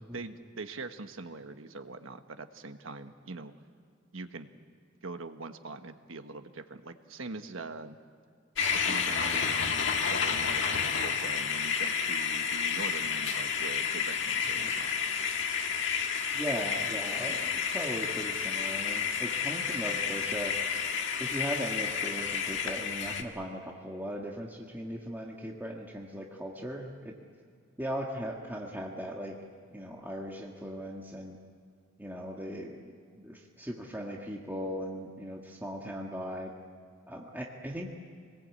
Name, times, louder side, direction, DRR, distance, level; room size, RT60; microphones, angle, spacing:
voice 1, 0.0-3.5 4.1-4.5 5.0-8.0 8.7-14.9, right 3 dB, 75° right, 8 dB, 1.3 m, -43 dB
sound 1, 8.6-23.2, left 6 dB, 65° left, 1.8 m, -30 dB
voice 2, 16.3-20.6 21.2-27.1 27.8-29.3 29.7-31.4 32.0-32.8 33.2-36.5 37.1-37.9, equal, 10° right, -1 dB, 1.8 m, -38 dB
26.5 x 20.5 x 8.5 m, 2.2 s
head